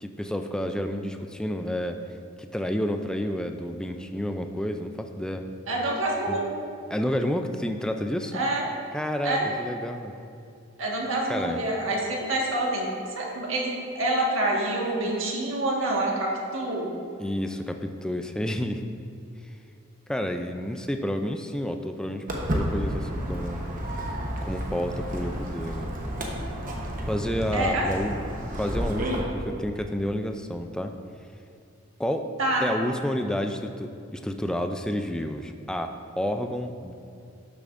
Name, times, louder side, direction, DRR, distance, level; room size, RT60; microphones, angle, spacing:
voice 1, 0.0-2.0 2.5-5.5 6.3-6.4 6.9-8.4 8.9-10.1 11.3-11.6 17.2-18.9 20.1-22.2 22.5-23.6 24.4-25.9 27.1-28.2 28.6-30.9 32.0-32.3 32.6-36.9, equal, 5° left, 5 dB, 0.3 m, -30 dB
voice 2, 5.7-6.6 8.3-8.7 9.2-9.5 10.8-12.9 13.1-16.9 27.5-27.9 32.4-32.7, right 1 dB, 75° right, -2 dB, 1.5 m, -27 dB
Walk footsteps, 22.3-29.2, equal, 40° right, 1.0 m, -31 dB
12.0 x 6.8 x 2.5 m, 2.5 s
head